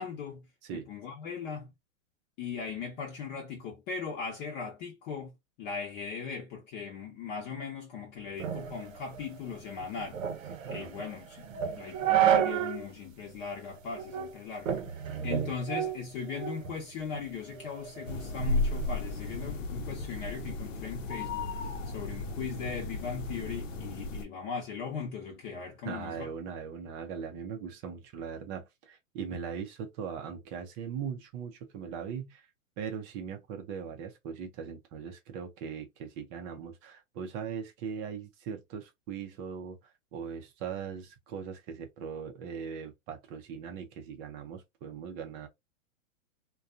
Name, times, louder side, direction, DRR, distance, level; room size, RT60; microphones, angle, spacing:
voice 1, 0.0-0.4 0.7-1.7 2.4-5.3 5.6-10.2 10.7-11.4 11.7-14.8 15.2-21.5 21.9-26.3, left 6 dB, 40° left, 0.9 m, -39 dB
sound 1, 8.4-12.9 13.2-13.3 13.9-14.3 14.7-16.7 17.1-19.6, right 6 dB, 75° right, 0.7 m, -30 dB
voice 2, 10.7-11.1 25.8-32.5 32.8-39.8 40.1-45.5, right 7 dB, 30° right, 0.5 m, -40 dB
sound 2, 18.1-24.3, left 3 dB, 70° left, 0.8 m, -38 dB
2.5 x 2.3 x 2.5 m
hypercardioid pair, 135°, 40 cm